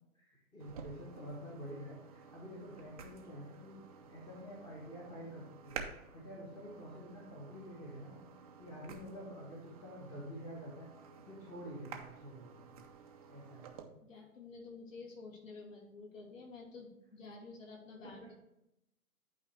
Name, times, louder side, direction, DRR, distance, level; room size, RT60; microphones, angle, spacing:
voice 1, 0.1-5.8 6.1-8.2 8.6-10.9 11.2-12.8 13.3-13.7 18.0-18.4, equal, 10° left, -3 dB, 1.1 m, -48 dB
sound 1, 0.6-13.8, right 6 dB, 25° right, 0.6 m, -52 dB
voice 2, 14.0-18.4, left 4 dB, 60° left, -1 dB, 2.7 m, -50 dB
11.0 x 4.7 x 3.3 m, 0.85 s
hypercardioid pair, 150°, 45 cm